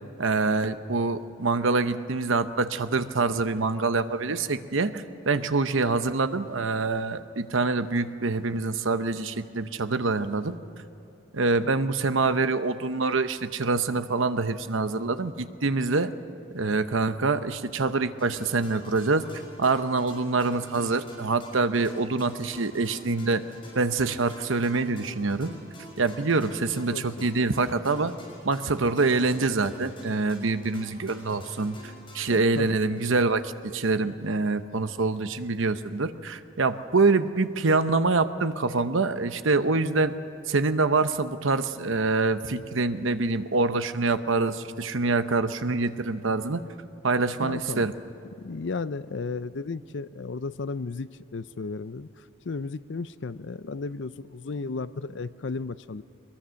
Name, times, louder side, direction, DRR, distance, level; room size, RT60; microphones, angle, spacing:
voice 1, 0.2-10.6 11.3-16.1 16.5-19.2 19.6-23.4 23.7-25.5 26.0-28.1 28.4-40.1 40.5-46.6 47.0-47.9, right 3 dB, 75° right, 10 dB, 0.9 m, -25 dB
sound 1, 18.2-33.6, left 1 dB, 25° left, 6.5 m, -48 dB
voice 2, 26.9-27.3 32.3-32.7 47.4-47.9 48.4-52.1 52.5-56.0, left 4 dB, 65° left, 15 dB, 0.5 m, -34 dB
23.0 x 22.0 x 6.4 m, 2.9 s
head